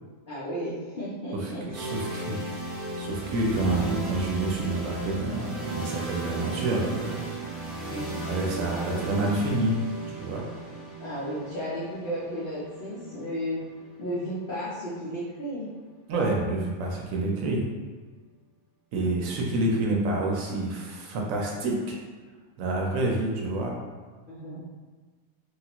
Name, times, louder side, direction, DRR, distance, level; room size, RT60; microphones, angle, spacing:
voice 1, 0.3-1.6 7.8-8.2 11.0-13.6 14.0-15.7 16.1-16.3 24.3-24.8, equal, 55° left, -9 dB, 0.6 m, -34 dB
voice 2, 1.3-2.4 3.0-7.2 8.2-10.4 16.1-17.7 18.9-22.0 22.6-23.8, right 2 dB, 70° right, -1 dB, 0.9 m, -28 dB
sound 1, 1.7-15.6, right 3 dB, ahead, 0.5 m, -36 dB
3.3 x 2.3 x 2.9 m, 1.4 s
omnidirectional pair, 1.5 m